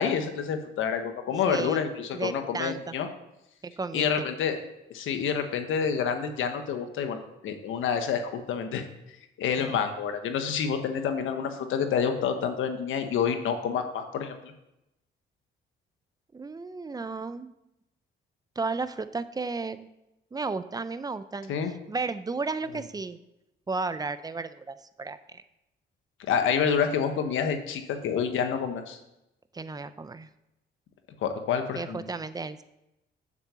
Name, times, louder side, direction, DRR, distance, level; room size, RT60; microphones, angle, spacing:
voice 1, 0.0-3.1 3.9-4.6 4.9-8.9 9.4-14.4 21.5-21.7 26.3-29.0 31.2-32.0, left 7 dB, 80° left, 7 dB, 1.3 m, -28 dB
voice 2, 1.5-1.8 2.1-2.9 3.6-4.2 9.6-9.8 16.3-17.5 18.6-19.9 20.3-21.5 21.9-23.2 23.7-25.4 29.5-30.3 31.8-32.6, right 4 dB, 20° right, 12 dB, 0.7 m, -33 dB
7.5 x 7.0 x 7.0 m, 0.89 s
cardioid pair, 90°, 20 cm